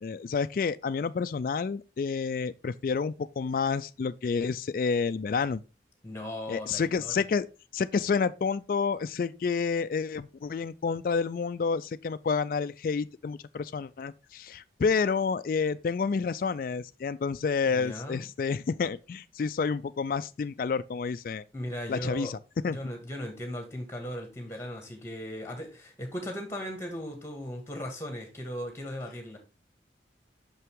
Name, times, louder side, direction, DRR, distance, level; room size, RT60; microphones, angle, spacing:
voice 1, 0.0-5.6 6.5-7.5 7.7-21.4 21.9-22.4 22.6-22.8, left 5 dB, 50° left, 0.3 m, -29 dB
voice 2, 6.0-7.1 17.7-18.3 21.5-22.3 22.7-29.4, equal, 15° left, 1.8 m, -37 dB
6.1 x 5.6 x 3.6 m
head